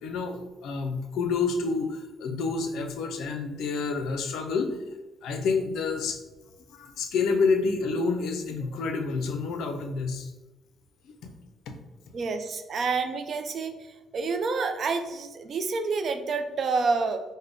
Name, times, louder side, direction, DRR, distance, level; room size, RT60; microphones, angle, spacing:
voice 1, 0.0-4.8 5.2-6.2 6.7-10.3 11.0-11.3 11.7-11.8, left 4 dB, 80° left, 6 dB, 0.4 m, -28 dB
voice 2, 12.1-13.7 14.1-17.2, right 4 dB, 55° right, 8 dB, 0.4 m, -28 dB
3.4 x 2.1 x 3.7 m, 1.1 s
cardioid pair, 90°, 0 cm